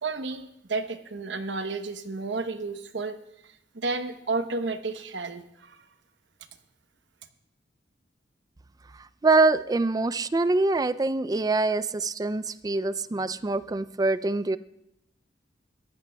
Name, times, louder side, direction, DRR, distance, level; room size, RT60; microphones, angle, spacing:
voice 1, 0.0-3.2 3.7-5.8, right 3 dB, 75° right, 8 dB, 1.0 m, -32 dB
voice 2, 9.2-14.6, right 3 dB, 20° right, 15 dB, 0.4 m, -24 dB
22.5 x 15.0 x 2.3 m, 0.80 s
head